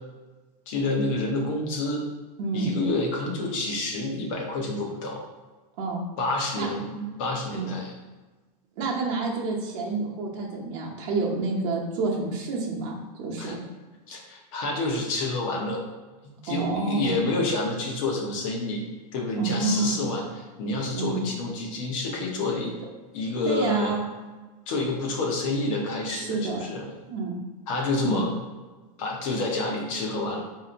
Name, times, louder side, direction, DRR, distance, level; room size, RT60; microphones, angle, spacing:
voice 1, 0.7-2.0 2.5-5.2 6.2-7.9 13.4-13.5 14.1-15.8 16.2-18.8 19.1-22.8 23.1-23.9 24.7-26.9 27.7-28.3 29.0-30.4, left 2 dB, 50° left, 0 dB, 0.9 m, -28 dB
voice 2, 2.4-2.7 5.8-6.0 6.5-6.7 7.5-7.7 8.8-13.6 16.5-17.2 19.3-20.0 20.9-21.2 23.4-24.1 26.1-26.6 27.1-27.4 28.0-28.2, right 3 dB, 50° right, -2 dB, 0.9 m, -28 dB
4.1 x 2.8 x 2.5 m, 1.2 s
supercardioid pair, 170°, 21 cm